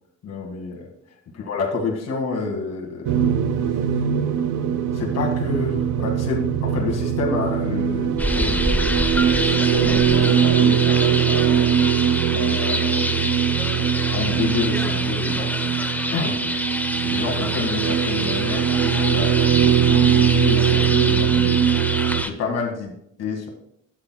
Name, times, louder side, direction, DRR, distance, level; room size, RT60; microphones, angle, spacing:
voice 1, 0.2-0.9 1.3-3.4 3.7-4.1 4.9-8.8 9.4-11.8 12.3-13.4 14.1-16.4 17.0-21.6 22.2-22.9 23.2-23.5, left 4 dB, 60° left, 0 dB, 1.9 m, -29 dB
sound 1, 3.1-22.2, right 9 dB, 85° right, 0.7 m, -21 dB
sound 2, 8.2-22.3, left 1 dB, 5° left, 0.7 m, -26 dB
11.5 x 8.0 x 2.2 m, 0.73 s
cardioid pair, 90°, 30 cm